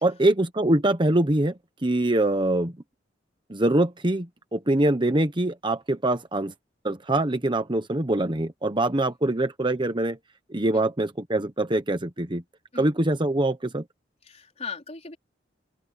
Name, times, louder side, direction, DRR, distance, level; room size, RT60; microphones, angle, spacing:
voice 1, 0.0-2.8 3.5-6.5 6.8-10.2 10.5-12.4 12.7-13.8, right 1 dB, 25° right, 1.2 m, -24 dB
voice 2, 14.2-15.2, left 5 dB, 35° left, 4.4 m, -38 dB
open air
head